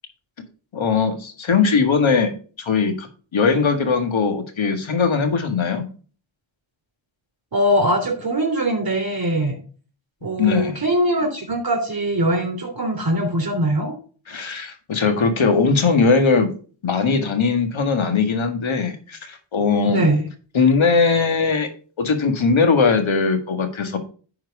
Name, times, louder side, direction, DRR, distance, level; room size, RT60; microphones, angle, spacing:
voice 1, 0.7-2.3 2.6-3.1 3.3-5.8 10.4-10.8 14.3-16.5 16.8-20.0 20.5-21.7 22.0-24.0, left 4 dB, 75° left, 7 dB, 1.8 m, -19 dB
voice 2, 7.5-9.6 10.2-13.9 19.9-20.3, right 1 dB, 50° right, 2 dB, 3.4 m, -21 dB
10.0 x 4.7 x 4.7 m, 0.39 s
wide cardioid pair, 75°, 47 cm